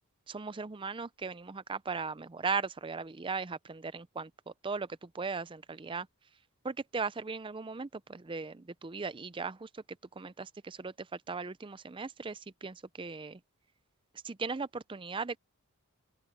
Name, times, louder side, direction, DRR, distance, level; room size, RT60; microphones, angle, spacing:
voice 1, 0.3-6.1 6.6-9.8 10.2-13.4 14.2-15.4, right 4 dB, 20° right, 0.5 m, -38 dB
open air
head